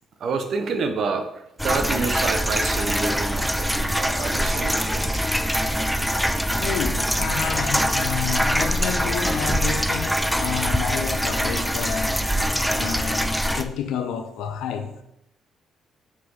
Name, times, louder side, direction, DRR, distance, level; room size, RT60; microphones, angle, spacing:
voice 1, 0.2-5.3, right 4 dB, 60° right, 0.9 m, -28 dB
sound 1, 1.6-13.6, equal, ahead, 0.4 m, -24 dB
Crackle, 4.9-10.2, equal, 45° right, 2.6 m, -38 dB
voice 2, 6.6-12.1 12.7-15.0, left 8 dB, 85° left, 0.7 m, -30 dB
5.8 x 4.8 x 4.0 m
cardioid pair, 90°, 0 cm